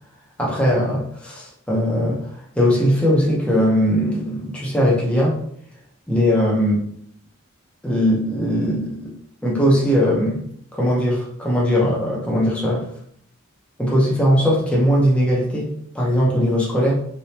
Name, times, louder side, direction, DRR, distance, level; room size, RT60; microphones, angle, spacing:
voice 1, 0.4-2.2 2.6-5.4 6.1-6.8 7.8-9.1 9.4-10.4 10.7-12.9 13.8-16.9, equal, 5° left, -5 dB, 0.8 m, -19 dB
3.7 x 3.4 x 2.8 m, 0.65 s
head